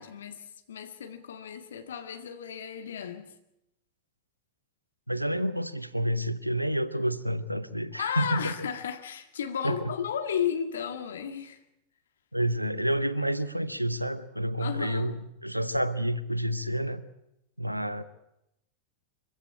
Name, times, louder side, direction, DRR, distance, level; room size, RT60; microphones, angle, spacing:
voice 1, 0.0-3.4 7.9-11.6 14.6-15.1, left 8 dB, 65° left, 1.8 m, -34 dB
voice 2, 5.1-8.5 9.6-9.9 12.3-17.0 17.6-18.0, equal, 90° right, 0.9 m, -29 dB
24.0 x 15.5 x 8.7 m
figure-of-eight pair, 90°, 0 cm